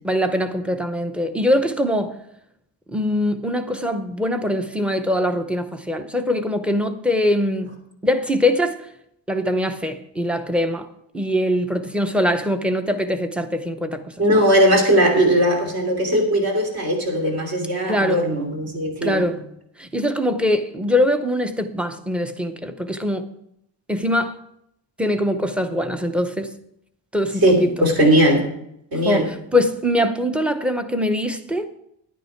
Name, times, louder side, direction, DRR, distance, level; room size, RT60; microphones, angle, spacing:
voice 1, 0.0-2.2 2.9-7.8 8.0-8.8 9.3-10.9 11.1-14.0 14.3-14.4 17.9-18.3 19.0-19.4 19.8-23.2 23.9-24.4 25.0-26.5 27.1-27.7 28.9-31.7, left 1 dB, 5° right, 0.7 m, -22 dB
voice 2, 14.2-19.3 27.4-28.6 28.9-29.3, equal, 50° right, 3.1 m, -18 dB
11.0 x 9.3 x 4.5 m
cardioid pair, 145°, 46 cm